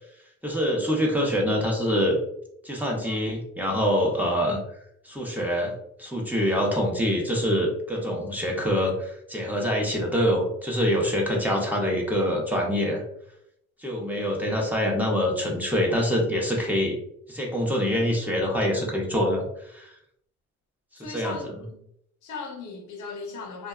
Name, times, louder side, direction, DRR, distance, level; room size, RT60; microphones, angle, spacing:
voice 1, 0.4-2.2 2.6-4.6 5.0-13.0 13.8-17.0 17.3-19.9 21.0-21.3, equal, 5° right, 0.6 m, -25 dB
voice 2, 21.0-21.8 22.2-23.7, left 4 dB, 80° left, 0.6 m, -38 dB
2.7 x 2.1 x 2.3 m
cardioid pair, 90°, 30 cm